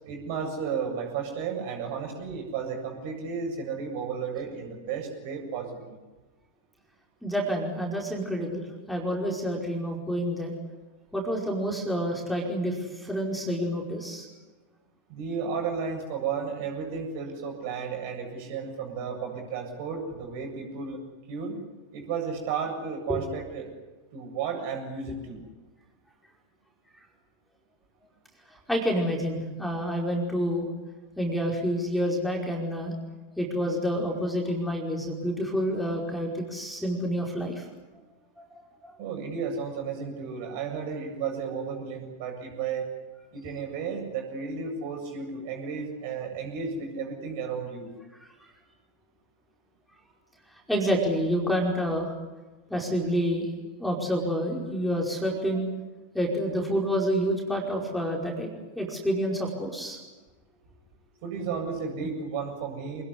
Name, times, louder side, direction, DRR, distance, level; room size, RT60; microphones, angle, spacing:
voice 1, 0.0-5.7 15.1-21.0 21.3-21.6 21.9-23.7 24.1-25.4 39.0-42.9 43.3-47.9 61.2-63.0, right 6 dB, 50° right, 3 dB, 7.7 m, -33 dB
voice 2, 7.2-10.5 11.1-14.3 23.1-23.2 28.7-30.7 31.2-32.9 33.4-37.6 38.4-38.5 38.8-38.9 50.7-52.1 52.7-53.5 53.8-55.7 56.1-58.5 58.7-60.0 61.4-61.6, equal, ahead, 0 dB, 5.1 m, -28 dB
27.0 x 20.5 x 9.8 m, 1.2 s
figure-of-eight pair, 90°, 0 cm